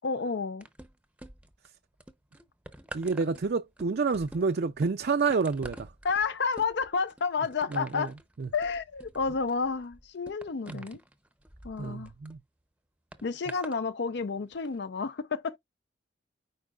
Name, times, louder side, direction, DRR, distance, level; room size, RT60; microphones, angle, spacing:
voice 1, 0.0-0.7 6.0-8.1 8.5-11.0 11.6-12.1 13.2-15.6, left 5 dB, 60° left, 0.5 m, -30 dB
sound 1, 0.6-1.7 2.0-12.4 13.1-13.8 14.5-14.7, right 1 dB, 5° right, 0.7 m, -48 dB
voice 2, 2.9-5.9 7.7-8.1 8.4-8.5 10.7-10.8 11.8-12.4, right 4 dB, 55° right, 0.5 m, -28 dB
9.3 x 4.6 x 2.4 m
head